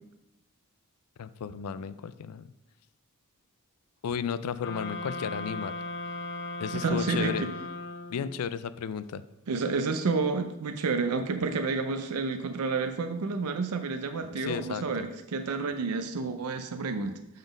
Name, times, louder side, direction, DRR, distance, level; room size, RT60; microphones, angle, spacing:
voice 1, 1.2-2.5 4.0-5.8 6.6-7.5 8.1-9.2 14.3-15.1, left 7 dB, 85° left, 14 dB, 0.4 m, -34 dB
sound 1, 4.6-8.5, left 2 dB, 55° left, 0.7 m, -37 dB
voice 2, 6.7-7.5 9.5-17.2, right 4 dB, 85° right, 7 dB, 0.5 m, -30 dB
7.0 x 4.0 x 5.2 m, 0.90 s
head